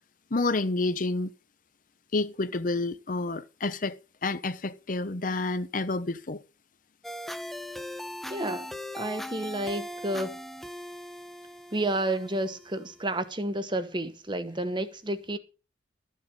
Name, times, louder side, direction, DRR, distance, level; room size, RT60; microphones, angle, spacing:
voice 1, 0.3-1.3 2.1-6.4, left 3 dB, 45° left, 0.8 m, -29 dB
sound 1, 7.0-13.1, left 1 dB, ahead, 0.7 m, -40 dB
voice 2, 8.3-10.3 11.7-15.4, right 1 dB, 25° right, 1.2 m, -31 dB
13.5 x 7.6 x 5.5 m
head